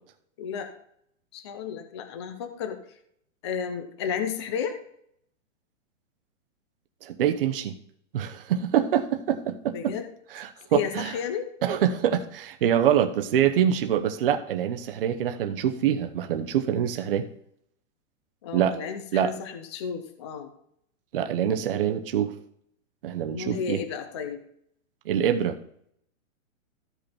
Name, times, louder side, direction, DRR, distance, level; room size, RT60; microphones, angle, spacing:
voice 1, 0.4-0.7 1.3-2.8 3.4-4.8 9.7-10.0 10.7-11.5 18.4-20.5 21.4-21.7 23.3-24.4, left 7 dB, 20° left, 6 dB, 0.6 m, -33 dB
voice 2, 7.0-7.7 8.1-9.9 10.3-11.1 11.6-17.3 18.5-18.7 19.1-19.3 21.1-22.3 23.0-23.8 25.1-25.6, right 9 dB, 45° right, 6 dB, 0.9 m, -25 dB
14.0 x 5.4 x 4.3 m, 0.69 s
hypercardioid pair, 170°, 40 cm